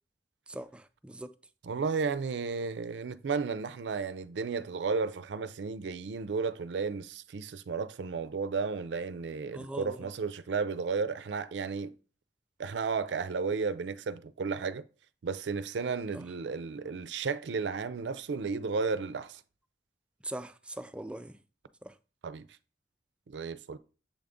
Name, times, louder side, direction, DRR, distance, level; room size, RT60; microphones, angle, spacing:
voice 1, 0.5-1.3 9.5-10.1 16.1-16.3 20.2-21.4 21.8-21.9 23.7-23.8, right 1 dB, 5° right, 0.3 m, -41 dB
voice 2, 1.6-11.9 12.6-14.8 15.2-19.4 22.2-22.5 23.3-23.8, right 5 dB, 80° right, 0.4 m, -33 dB
7.1 x 3.8 x 3.5 m
head